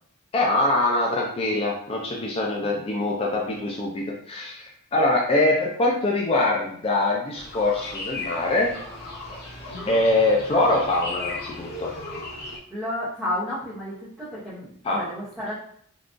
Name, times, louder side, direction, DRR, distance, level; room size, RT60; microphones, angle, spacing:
voice 1, 0.3-8.7 9.9-11.9 14.8-15.0, left 2 dB, 25° left, -1 dB, 0.3 m, -23 dB
sound 1, 7.3-12.6, left 2 dB, 45° left, 0.8 m, -36 dB
voice 2, 12.7-15.6, left 1 dB, ahead, -11 dB, 0.7 m, -32 dB
3.6 x 2.3 x 2.5 m, 0.62 s
head